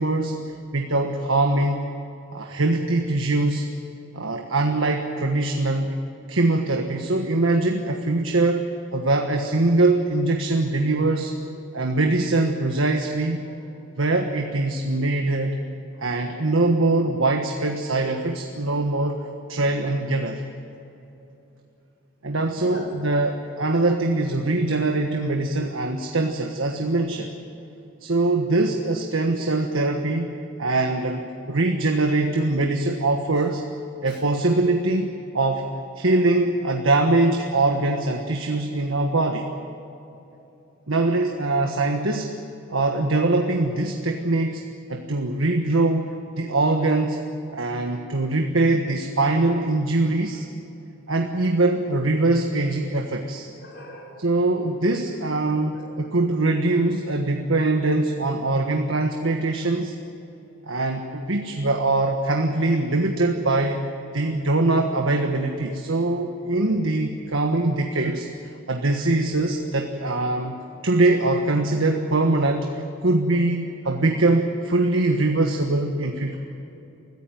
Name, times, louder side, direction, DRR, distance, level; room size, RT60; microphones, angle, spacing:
voice 1, 0.0-1.9 2.3-3.7 4.1-6.0 6.3-11.3 11.7-13.4 14.0-15.6 16.0-19.2 19.5-20.4 22.2-27.3 28.0-33.6 34.0-35.7 35.9-39.5 40.9-42.3 42.7-47.2 47.5-50.4 51.1-53.5 54.2-59.9 60.6-63.8 64.1-68.3 68.7-70.6 70.8-72.7 73.0-76.3, right 2 dB, 75° right, 3 dB, 1.5 m, -22 dB
voice 2, 2.4-3.0 3.4-3.6 10.4-10.7 13.4-13.7 15.9-16.4 22.6-22.9 30.4-30.5 34.0-34.2 53.6-54.3 55.7-55.9, equal, 55° left, -2 dB, 5.4 m, -45 dB
24.0 x 15.5 x 9.3 m, 2.9 s
head